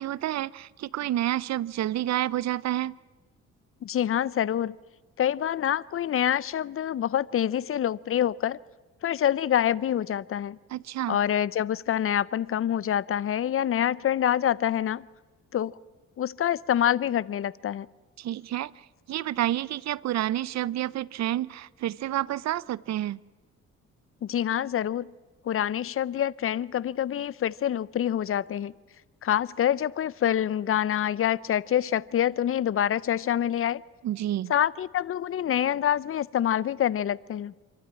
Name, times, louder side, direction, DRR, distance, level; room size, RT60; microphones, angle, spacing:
voice 1, 0.0-2.9 10.7-11.2 18.2-18.7 19.1-23.2 34.0-34.5, right 13 dB, 60° right, 22 dB, 0.6 m, -29 dB
voice 2, 3.8-4.8 5.2-8.6 9.0-10.6 11.1-15.1 15.5-15.8 16.2-17.9 24.2-25.1 25.4-28.7 29.2-33.8 34.5-37.5, left 10 dB, 45° left, 21 dB, 0.6 m, -26 dB
27.0 x 12.5 x 9.8 m, 1.3 s
cardioid pair, 90°, 30 cm